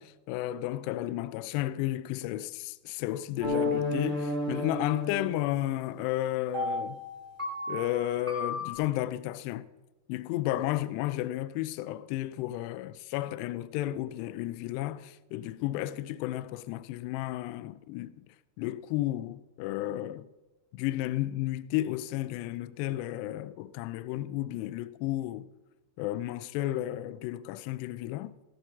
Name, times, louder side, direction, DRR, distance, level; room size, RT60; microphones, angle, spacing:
voice 1, 0.0-7.0 7.7-9.7 10.1-18.3 18.6-20.3 20.7-25.5 26.0-28.3, left 14 dB, 85° left, 2.5 m, -33 dB
sound 1, 3.4-5.7 6.5-8.7, left 2 dB, 10° right, 2.5 m, -32 dB
18.5 x 6.5 x 5.9 m
omnidirectional pair, 5.0 m